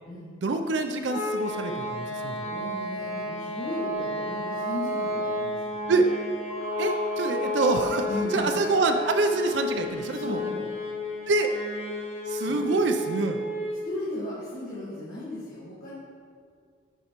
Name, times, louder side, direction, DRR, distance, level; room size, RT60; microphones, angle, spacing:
voice 1, 0.4-2.3 5.9-6.1 6.8-8.1 8.3-10.4 11.3-11.5 12.3-13.4, right 3 dB, 65° right, 6 dB, 0.5 m, -26 dB
sound 1, 1.1-13.9, left 1 dB, 35° left, 0.7 m, -32 dB
voice 2, 2.5-5.8 8.1-8.6 10.1-10.7 12.4-12.9 13.8-16.0, left 1 dB, 55° left, -9 dB, 1.7 m, -36 dB
sound 2, 6.5-9.1, right 2 dB, 5° left, 1.4 m, -41 dB
10.5 x 5.5 x 3.0 m, 2.1 s
head